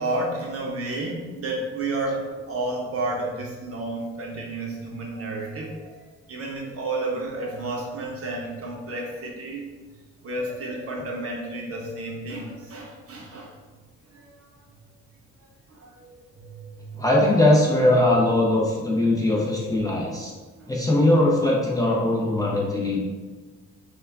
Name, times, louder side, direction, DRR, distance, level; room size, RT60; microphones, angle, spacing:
voice 1, 0.0-9.6 10.2-13.6 14.1-14.4 15.7-17.0 20.6-20.7, right 2 dB, 50° right, -1 dB, 0.7 m, -31 dB
voice 2, 17.0-20.3 20.7-23.0, left 1 dB, 10° left, -4 dB, 0.4 m, -20 dB
2.2 x 2.2 x 3.4 m, 1.3 s
cardioid pair, 90°, 30 cm